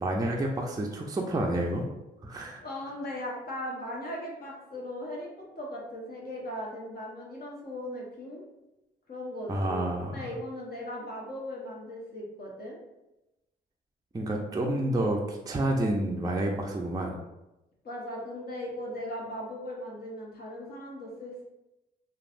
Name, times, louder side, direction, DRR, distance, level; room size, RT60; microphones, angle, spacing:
voice 1, 0.0-1.8 2.2-2.6 9.5-10.3 14.1-17.1, right 1 dB, 20° right, 0 dB, 0.5 m, -29 dB
voice 2, 2.6-5.3 5.6-8.4 9.1-12.8 17.8-21.4, left 1 dB, 50° left, -3 dB, 1.1 m, -38 dB
3.2 x 2.3 x 2.5 m, 0.95 s
hypercardioid pair, 50°, 20 cm